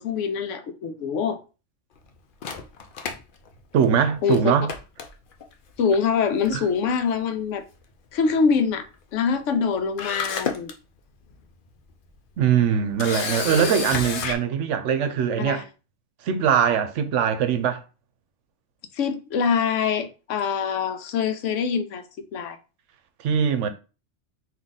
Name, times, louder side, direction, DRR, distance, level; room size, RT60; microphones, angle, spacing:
voice 1, 0.0-1.4 4.2-4.4 5.8-7.7 8.1-8.9 9.1-10.7 13.4-13.7 15.4-15.6 18.9-22.0 22.3-22.6, left 6 dB, 90° left, 1.0 m, -24 dB
Camera, 2.4-4.0 4.3-4.4 4.7-5.5 6.4-6.7 7.0-7.1 9.6-9.7 10.0-10.7 11.3-11.4 13.0-14.4, left 5 dB, 55° left, 0.7 m, -30 dB
voice 2, 3.7-4.7 6.5-6.6 12.4-15.6 16.2-17.8 23.2-23.7, right 8 dB, 80° right, 0.9 m, -22 dB
3.6 x 2.7 x 3.9 m
omnidirectional pair, 1.3 m